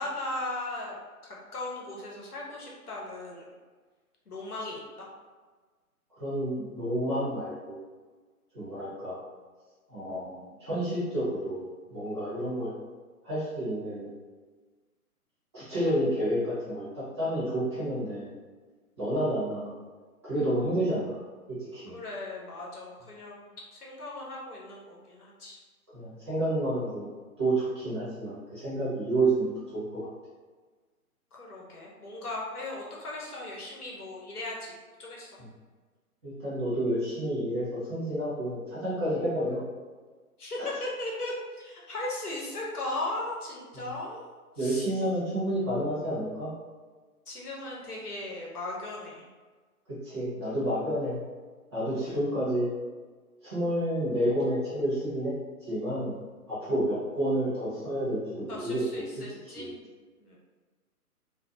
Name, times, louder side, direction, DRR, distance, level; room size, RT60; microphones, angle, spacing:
voice 1, 0.0-3.5 4.3-4.8 21.9-23.4 23.7-25.6 31.3-34.7 35.0-35.3 40.4-44.3 44.6-44.9 47.3-49.3 51.9-52.2 58.5-59.7 60.2-60.4, left 2 dB, 75° left, -3 dB, 0.9 m, -37 dB
voice 2, 6.2-7.8 8.5-9.2 9.9-12.7 13.2-14.1 15.5-18.3 19.0-19.7 20.2-21.2 21.7-22.0 25.9-27.1 27.4-30.0 36.2-39.6 40.6-40.7 44.6-46.5 49.9-51.2 51.7-52.7 53.4-55.3 55.7-56.1 56.5-59.0 59.5-59.7, right 1 dB, 20° right, -11 dB, 0.6 m, -30 dB
2.5 x 2.1 x 2.8 m, 1.4 s
figure-of-eight pair, 130°, 45 cm